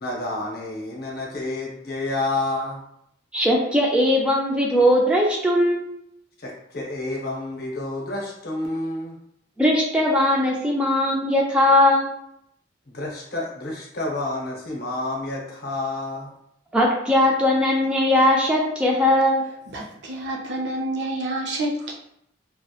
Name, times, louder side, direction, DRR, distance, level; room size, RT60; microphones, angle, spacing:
voice 1, 0.0-2.8 6.4-9.2 12.9-16.3, left 2 dB, 55° left, -2 dB, 0.7 m, -29 dB
voice 2, 3.3-6.0 9.6-12.1 16.7-19.4, left 1 dB, 5° right, -3 dB, 0.3 m, -19 dB
voice 3, 19.7-21.9, right 1 dB, 65° right, 0 dB, 0.5 m, -28 dB
2.8 x 2.0 x 2.3 m, 0.74 s
head